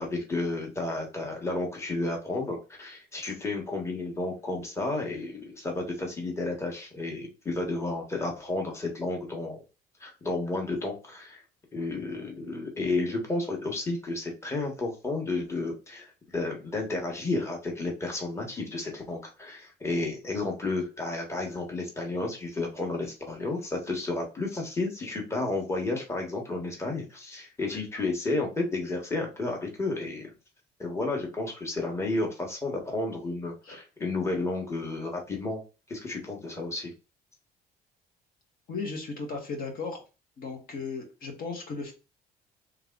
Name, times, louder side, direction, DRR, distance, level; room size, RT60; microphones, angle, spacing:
voice 1, 0.0-9.6 10.0-11.4 11.7-30.3 30.8-35.6 35.9-36.9, left 2 dB, 15° left, 0 dB, 1.4 m, -32 dB
voice 2, 38.7-40.0 40.4-41.9, left 4 dB, 60° left, 2 dB, 1.6 m, -35 dB
3.4 x 3.3 x 3.8 m, 0.30 s
cardioid pair, 110°, 17 cm